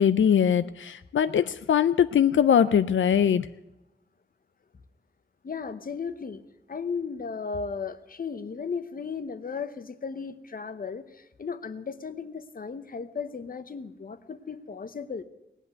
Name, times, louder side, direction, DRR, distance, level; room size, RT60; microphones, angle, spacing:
voice 1, 0.0-3.5, left 8 dB, 90° left, 12 dB, 0.5 m, -21 dB
voice 2, 5.4-6.4 6.7-15.2, left 5 dB, 45° left, 12 dB, 0.9 m, -35 dB
18.0 x 8.2 x 9.6 m, 0.97 s
wide cardioid pair, 140°, 20 cm